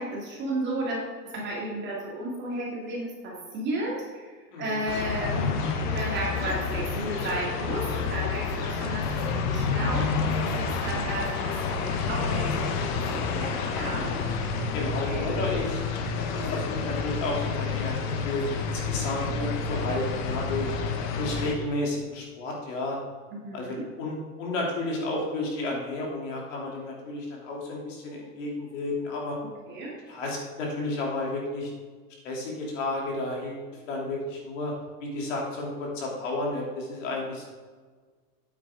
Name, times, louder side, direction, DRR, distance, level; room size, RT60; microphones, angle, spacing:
voice 1, 0.0-14.1 14.7-15.4 23.3-23.9 29.4-29.9, right 1 dB, 20° right, -3 dB, 2.3 m, -34 dB
sound 1, 4.9-21.5, left 5 dB, 30° left, 0.8 m, -29 dB
voice 2, 14.7-15.8 16.3-20.7 21.2-23.0 23.5-29.4 30.1-31.7 32.2-34.7 35.0-37.4, left 2 dB, 50° left, -2 dB, 3.1 m, -32 dB
8.9 x 8.6 x 3.7 m, 1.5 s
supercardioid pair, 155°, 47 cm